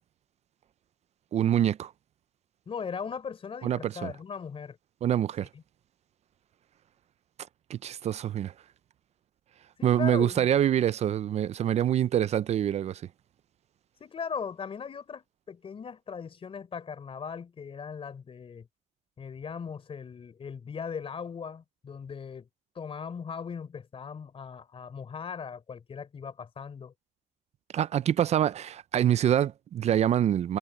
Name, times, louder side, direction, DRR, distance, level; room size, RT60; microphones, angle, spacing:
voice 1, 1.3-1.9 3.6-4.1 5.0-5.5 7.7-8.5 9.8-13.0 27.7-30.6, right 10 dB, 55° right, 0.5 m, -25 dB
voice 2, 2.7-4.8 5.5-5.6 9.8-10.5 14.0-18.7 19.2-22.5 22.8-26.9, left 6 dB, 45° left, 3.7 m, -38 dB
cardioid pair, 95°, 14 cm